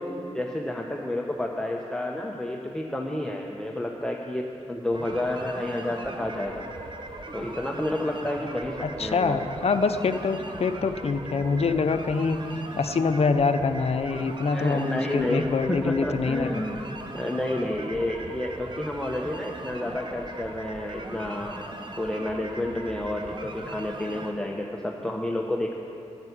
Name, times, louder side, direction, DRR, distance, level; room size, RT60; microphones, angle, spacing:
voice 1, 0.0-6.6 7.3-9.4 14.5-21.6 22.0-25.8, left 1 dB, 5° left, 0 dB, 1.0 m, -30 dB
sound 1, 4.9-24.3, right 2 dB, 40° right, 1.2 m, -39 dB
voice 2, 8.8-12.4 12.8-16.5, left 4 dB, 60° left, 9 dB, 0.7 m, -25 dB
12.0 x 8.1 x 9.9 m, 2.9 s
cardioid pair, 60°, 12 cm